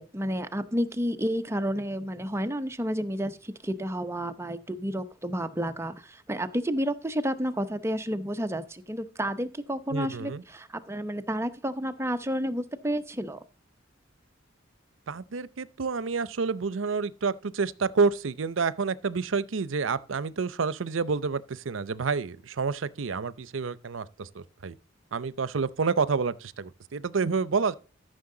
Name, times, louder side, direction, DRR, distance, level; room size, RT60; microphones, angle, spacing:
voice 1, 0.0-13.4, equal, 15° right, 0.8 m, -31 dB
voice 2, 9.9-10.4 15.1-24.8 25.1-27.7, right 5 dB, 85° right, 0.6 m, -29 dB
13.5 x 6.5 x 3.8 m
head